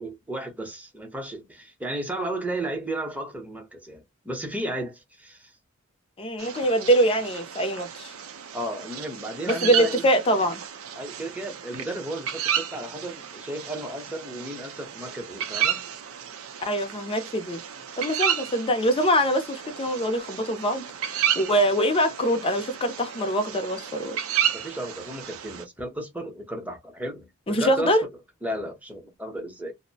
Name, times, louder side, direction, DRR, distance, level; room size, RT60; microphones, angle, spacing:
voice 1, 0.0-5.5 8.5-10.1 11.0-15.8 24.5-28.0 28.4-29.7, right 1 dB, 5° right, 0.8 m, -34 dB
voice 2, 6.2-8.1 9.5-10.6 16.7-17.6 18.0-24.2 27.5-28.0, equal, 25° left, 0.6 m, -24 dB
sound 1, 6.4-25.6, right 9 dB, 75° right, 0.5 m, -32 dB
2.6 x 2.1 x 2.6 m
head